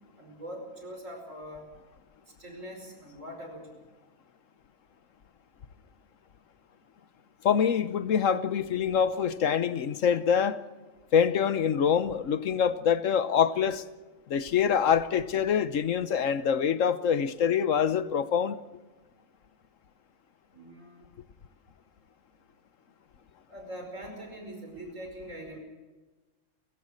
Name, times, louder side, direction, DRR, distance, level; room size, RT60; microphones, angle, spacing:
voice 1, 0.2-1.7 2.4-3.8 20.5-21.1 23.5-25.6, equal, 85° right, 5.6 m, -42 dB
voice 2, 7.4-10.6 11.1-13.8 14.3-18.6, left 7 dB, 90° left, 1.4 m, -25 dB
30.0 x 16.0 x 6.5 m
omnidirectional pair, 1.3 m